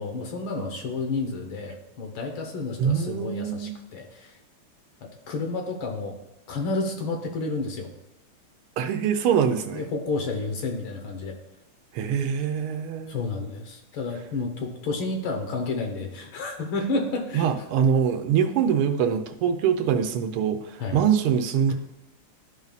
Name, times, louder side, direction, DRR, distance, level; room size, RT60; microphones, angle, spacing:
voice 1, 0.0-4.4 5.0-6.2 6.5-7.9 9.7-11.4 13.1-17.5 20.8-21.0 21.7-21.8, left 3 dB, 70° left, 2 dB, 1.9 m, -30 dB
voice 2, 2.8-3.7 8.8-9.9 11.9-13.2 17.3-21.7, right 8 dB, 80° right, 7 dB, 1.6 m, -24 dB
13.0 x 5.3 x 2.4 m, 0.94 s
omnidirectional pair, 2.4 m